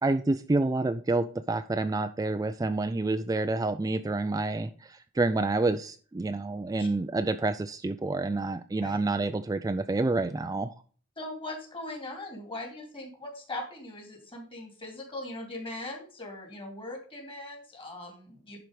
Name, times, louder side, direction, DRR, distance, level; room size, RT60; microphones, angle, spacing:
voice 1, 0.0-10.7, right 2 dB, 15° right, 9 dB, 0.4 m, -28 dB
voice 2, 11.2-18.6, left 2 dB, 25° left, 3 dB, 2.7 m, -40 dB
11.0 x 4.6 x 5.1 m, 0.42 s
head